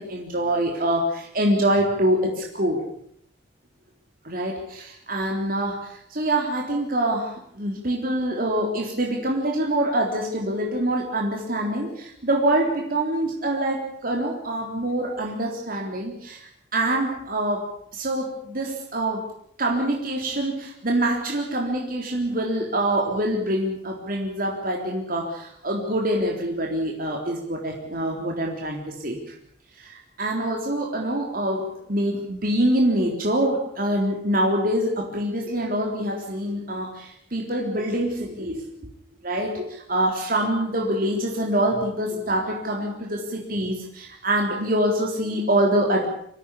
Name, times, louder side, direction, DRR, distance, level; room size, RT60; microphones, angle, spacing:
voice 1, 0.0-2.8 4.2-19.3 19.6-29.3 29.8-38.6 39.2-46.1, right 1 dB, 50° right, 0 dB, 3.8 m, -25 dB
25.5 x 16.5 x 8.5 m, 0.68 s
head